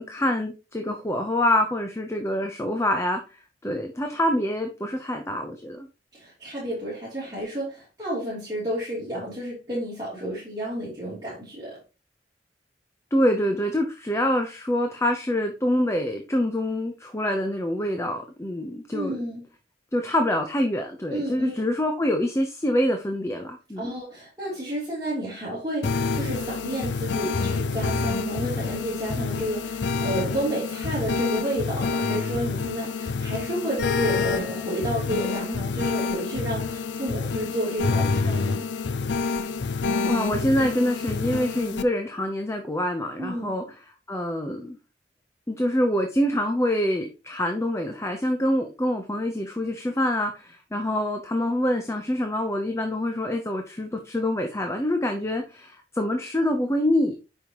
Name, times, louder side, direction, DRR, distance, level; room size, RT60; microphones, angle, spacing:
voice 1, 0.0-3.2 3.6-5.9 13.1-19.2 19.9-24.0 40.1-43.6 44.1-44.8 45.5-57.2, left 1 dB, 15° left, 4 dB, 0.8 m, -25 dB
voice 2, 6.1-11.8 18.9-19.4 21.1-21.5 23.8-38.7 43.2-43.5, right 1 dB, 20° right, -9 dB, 3.4 m, -31 dB
sound 1, 25.8-41.8, left 4 dB, 85° left, 0.5 m, -27 dB
8.5 x 5.6 x 3.0 m, 0.30 s
head